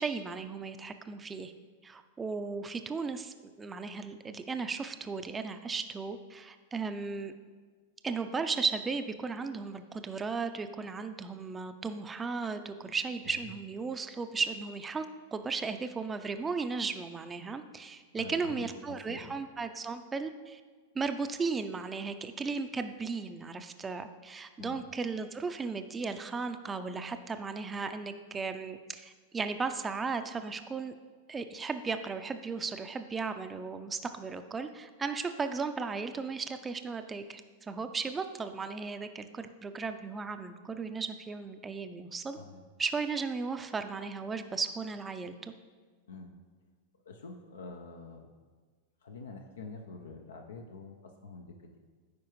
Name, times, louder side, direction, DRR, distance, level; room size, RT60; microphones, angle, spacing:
voice 1, 0.0-1.5 1.8-7.3 8.0-15.1 15.3-20.6 20.9-30.9 31.3-42.4 42.8-45.5, right 4 dB, 20° right, 8 dB, 0.4 m, -35 dB
voice 2, 18.2-19.4 24.6-24.8 42.3-42.6 46.1-46.3 47.1-48.3 49.0-51.8, left 3 dB, 85° left, 3 dB, 0.5 m, -46 dB
9.4 x 4.7 x 3.1 m, 1.5 s
hypercardioid pair, 110°, 0 cm